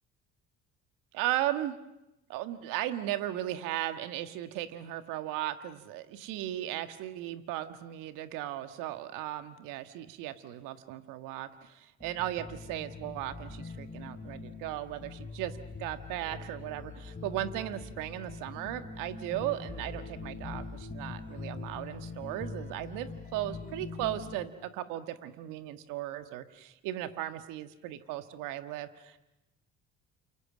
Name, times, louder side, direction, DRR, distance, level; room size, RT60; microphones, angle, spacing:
voice 1, 1.1-1.7 2.3-29.2, right 13 dB, 70° right, 10 dB, 1.7 m, -36 dB
sound 1, 12.0-24.5, left 4 dB, 25° left, 3.6 m, -43 dB
29.5 x 27.5 x 6.3 m, 0.92 s
hypercardioid pair, 60°, 33 cm